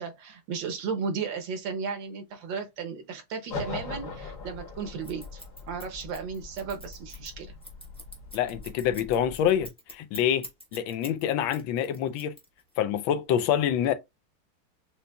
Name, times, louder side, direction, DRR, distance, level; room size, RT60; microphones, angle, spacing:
voice 1, 0.0-5.4 5.7-7.5, right 5 dB, 65° right, 1.5 m, -35 dB
sound 1, 3.5-9.7, left 4 dB, 45° left, 1.4 m, -41 dB
Scissors, 5.0-11.2 11.5-12.8, equal, 5° left, 0.4 m, -45 dB
voice 2, 8.3-12.3 12.8-13.9, left 10 dB, 75° left, 1.4 m, -26 dB
6.6 x 2.7 x 2.2 m
omnidirectional pair, 2.3 m